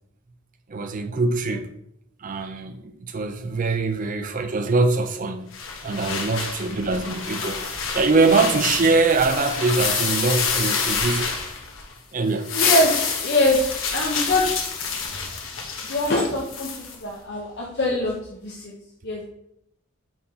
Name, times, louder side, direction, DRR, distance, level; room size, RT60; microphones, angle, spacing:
voice 1, 0.7-1.7 2.2-5.5 5.8-7.6 7.9-11.3 12.1-12.5, right 3 dB, 40° right, 0.5 m, -23 dB
sound 1, 5.5-11.9 12.3-17.0, left 5 dB, 70° left, 1.2 m, -27 dB
voice 2, 12.5-12.9 13.2-13.6 13.9-14.5 15.8-18.7 19.0-19.3, left 1 dB, 55° left, 0.9 m, -23 dB
4.4 x 4.3 x 5.5 m
head